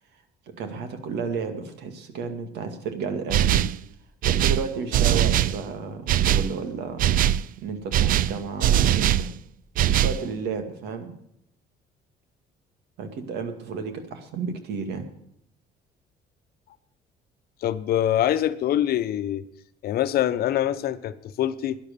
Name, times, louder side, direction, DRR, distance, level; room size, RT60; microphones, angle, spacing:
voice 1, 0.5-3.6 4.2-7.1 7.6-9.3 9.9-11.1 13.0-15.1, right 5 dB, 80° right, 7 dB, 2.3 m, -32 dB
sound 1, 3.3-3.8 4.2-5.6 6.1-6.5 7.0-7.4 7.9-9.3 9.8-10.2, right 11 dB, 55° right, 0.4 m, -21 dB
voice 2, 17.6-19.4 19.8-21.8, left 11 dB, 65° left, 12 dB, 0.9 m, -24 dB
12.0 x 10.5 x 6.8 m, 0.73 s
cardioid pair, 110°, 17 cm